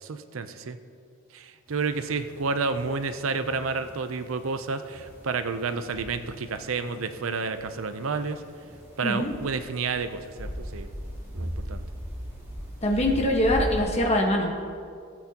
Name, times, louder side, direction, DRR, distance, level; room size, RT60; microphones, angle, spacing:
voice 1, 0.0-0.8 1.3-8.4 9.0-10.9 11.3-11.8, right 4 dB, 80° right, 10 dB, 0.6 m, -30 dB
sound 1, 1.7-13.8, equal, 15° right, 2.3 m, -39 dB
voice 2, 12.8-14.5, left 1 dB, 30° left, 0 dB, 1.3 m, -23 dB
17.5 x 8.1 x 2.9 m, 2.3 s
head